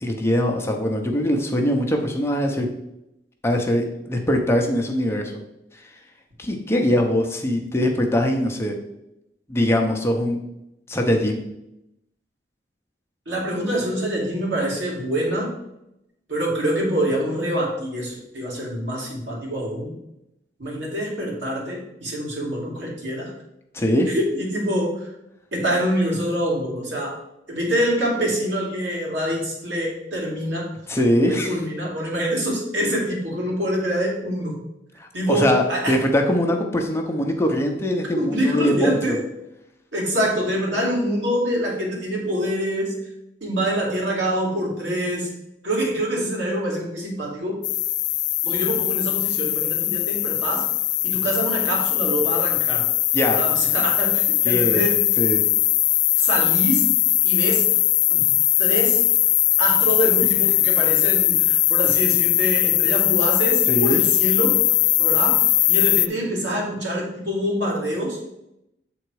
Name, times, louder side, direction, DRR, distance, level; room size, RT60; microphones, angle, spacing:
voice 1, 0.0-2.7 3.4-5.3 6.4-8.7 9.5-10.4 10.9-11.4 23.7-24.1 30.9-31.5 35.0-39.2 53.1-53.4 54.4-55.4 63.7-64.0, equal, 15° left, 2 dB, 0.7 m, -22 dB
voice 2, 13.3-15.6 16.3-19.9 20.6-23.3 24.1-25.1 25.5-27.2 27.5-30.7 31.2-34.6 35.1-35.9 38.2-39.2 39.9-43.0 43.4-45.3 45.6-47.6 48.4-50.7 51.0-52.9 53.3-55.0 56.2-56.9 57.2-57.7 58.1-58.3 58.6-59.0 59.6-64.6 65.0-68.2, equal, 80° right, -3 dB, 2.5 m, -25 dB
sound 1, 47.6-66.1, left 17 dB, 80° left, 0.3 m, -20 dB
8.0 x 3.9 x 4.7 m, 0.85 s
head